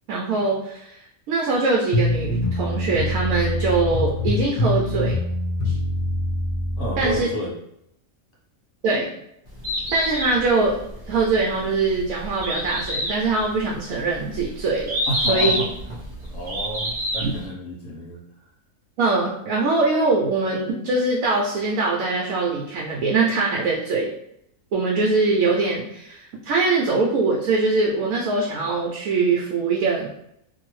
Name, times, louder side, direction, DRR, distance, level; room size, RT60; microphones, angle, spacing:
voice 1, 0.1-1.0 1.3-5.2 7.0-7.3 8.8-9.1 9.9-10.8 11.1-15.0 15.3-15.6 17.2-17.3 19.0-24.1 24.7-30.1, right 3 dB, 75° right, -2 dB, 1.0 m, -22 dB
sound 1, 1.9-7.2, left 1 dB, 50° left, 0.6 m, -24 dB
voice 2, 6.8-7.5 15.1-15.6 16.3-18.2, right 1 dB, 70° left, -3 dB, 1.3 m, -30 dB
Bird, 9.5-17.5, left 1 dB, 20° right, 1.2 m, -28 dB
2.7 x 2.5 x 3.1 m, 0.79 s
omnidirectional pair, 1.5 m